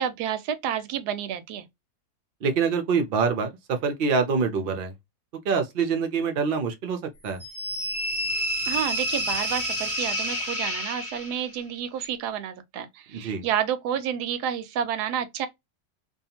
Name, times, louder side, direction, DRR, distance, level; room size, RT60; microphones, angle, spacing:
voice 1, 0.0-1.7 8.6-15.5, right 9 dB, 90° right, 1.2 m, -30 dB
voice 2, 2.4-4.9 5.4-7.4 13.1-13.5, right 5 dB, 60° right, 0.5 m, -25 dB
sound 1, 7.4-11.6, equal, 10° left, 0.7 m, -29 dB
2.7 x 2.3 x 2.7 m
omnidirectional pair, 1.7 m